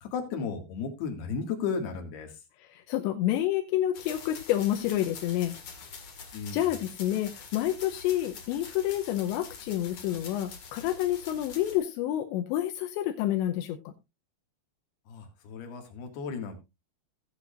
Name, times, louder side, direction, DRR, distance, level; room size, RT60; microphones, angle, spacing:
voice 1, 0.0-2.3 6.3-6.6 15.1-16.5, left 5 dB, 70° left, 3 dB, 3.8 m, -34 dB
voice 2, 2.6-5.5 6.5-13.9, left 13 dB, 85° left, 5 dB, 3.0 m, -29 dB
sound 1, 3.9-11.8, left 5 dB, 45° left, 2.3 m, -45 dB
17.0 x 8.6 x 2.5 m, 0.24 s
omnidirectional pair, 5.1 m